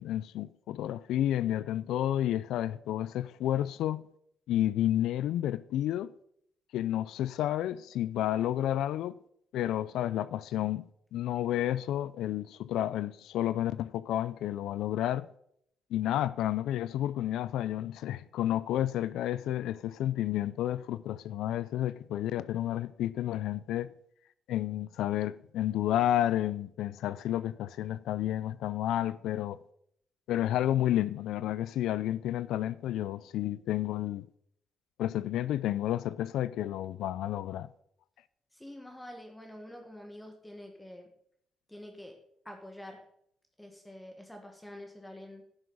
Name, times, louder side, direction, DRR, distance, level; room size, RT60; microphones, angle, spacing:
voice 1, 0.0-4.0 4.5-6.1 6.7-9.2 9.5-10.8 11.1-15.3 15.9-23.9 24.5-29.6 30.3-34.3 35.0-37.7, left 12 dB, 85° left, 0.3 m, -31 dB
voice 2, 38.5-41.1 41.7-42.2 42.4-43.0 43.6-45.4, left 1 dB, 10° left, 1.5 m, -47 dB
11.5 x 6.2 x 5.3 m
cardioid pair, 90°, 0 cm